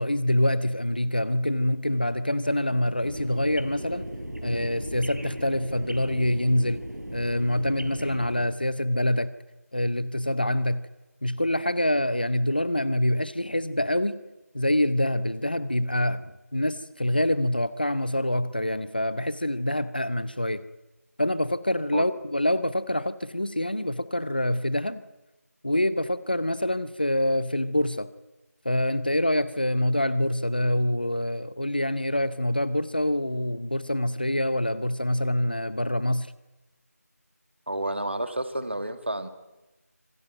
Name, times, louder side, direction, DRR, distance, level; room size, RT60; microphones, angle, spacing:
voice 1, 0.0-4.1 4.4-6.8 7.1-9.3 9.7-10.8 11.2-14.2 14.5-20.6 21.2-25.0 25.6-28.1 28.6-36.3, left 1 dB, 35° left, 0.8 m, -26 dB
sound 1, 3.0-8.5, equal, 85° right, 4.2 m, -37 dB
voice 2, 37.7-39.3, right 1 dB, 45° right, 2.1 m, -30 dB
25.5 x 17.0 x 9.1 m
figure-of-eight pair, 175°, 9 cm